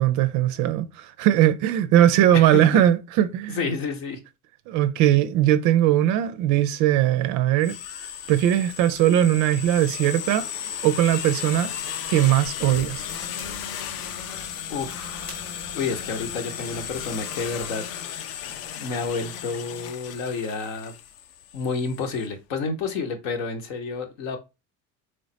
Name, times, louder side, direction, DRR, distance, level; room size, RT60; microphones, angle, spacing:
voice 1, 0.0-3.7 4.7-7.8 8.3-10.5 10.8-11.7 12.1-13.1, right 12 dB, 40° right, 0.5 m, -20 dB
voice 2, 2.3-2.8 3.5-4.2 14.7-15.4 15.7-17.8 18.1-18.5 18.8-20.9 21.5-24.4, left 4 dB, 60° left, 1.0 m, -30 dB
sound 1, 7.6-22.3, left 9 dB, 35° left, 0.4 m, -35 dB
sound 2, 12.6-17.7, right 1 dB, 90° left, 1.9 m, -45 dB
3.9 x 3.3 x 3.8 m
figure-of-eight pair, 60°, 45 cm